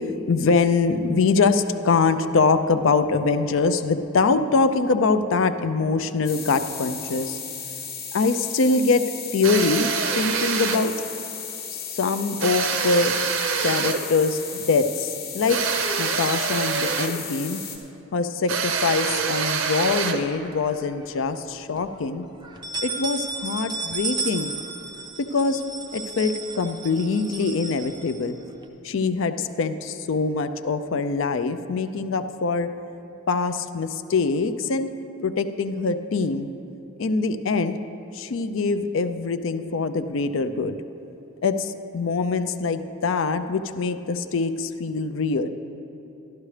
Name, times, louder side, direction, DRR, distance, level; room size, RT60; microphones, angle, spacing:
voice 1, 0.3-7.4 8.1-9.0 9.3-10.9 11.7-13.1 13.6-15.6 16.0-17.6 18.1-22.3 22.8-24.5 25.2-25.6 25.9-28.4 28.8-32.7 33.3-34.9 35.2-36.5 37.0-37.8 38.1-40.8 41.4-45.5, left 4 dB, 65° left, 10 dB, 0.4 m, -23 dB
sound 1, 6.2-17.8, left 6 dB, 45° left, 1.1 m, -35 dB
sound 2, 9.4-10.9 12.4-14.1 15.5-17.2 18.5-20.3, right 5 dB, 65° right, 0.6 m, -25 dB
sound 3, 20.0-20.9 21.3-21.4 21.8-21.9 22.4-28.6, right 4 dB, 20° right, 0.4 m, -34 dB
12.5 x 12.0 x 3.3 m, 3.0 s
head